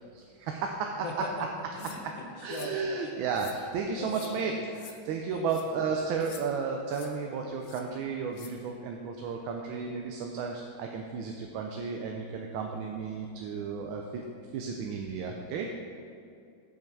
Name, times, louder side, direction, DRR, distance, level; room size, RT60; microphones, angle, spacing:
voice 1, 0.1-1.1 1.4-1.5 2.4-4.5 5.0-14.2 14.5-15.7, right 5 dB, 80° right, 2 dB, 1.4 m, -33 dB
voice 2, 1.0-1.4 1.7-3.2 3.9-4.3 5.3-5.5, left 2 dB, 55° left, 1 dB, 1.0 m, -40 dB
sound 1, 1.8-2.0 2.5-2.8 3.3-3.6 4.1-4.3 4.7-5.0 5.5-5.6 6.2-6.4 6.9-7.1 7.6-7.8 8.3-8.5, left 8 dB, 75° left, 0.7 m, -48 dB
7.5 x 7.3 x 4.7 m, 2.5 s
omnidirectional pair, 2.3 m